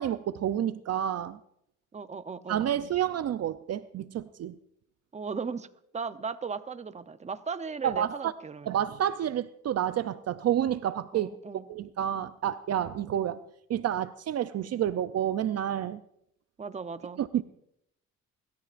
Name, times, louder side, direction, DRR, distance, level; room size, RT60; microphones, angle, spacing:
voice 1, 0.0-1.4 2.5-4.6 7.8-8.3 8.7-11.3 11.7-13.4 13.7-16.0 17.2-17.4, right 10 dB, 55° right, 0.6 m, -29 dB
voice 2, 1.9-2.7 5.1-5.7 5.9-8.8 11.1-11.7 16.6-17.2, right 5 dB, 25° right, 0.8 m, -37 dB
24.5 x 13.5 x 2.5 m
cardioid pair, 90°, 30 cm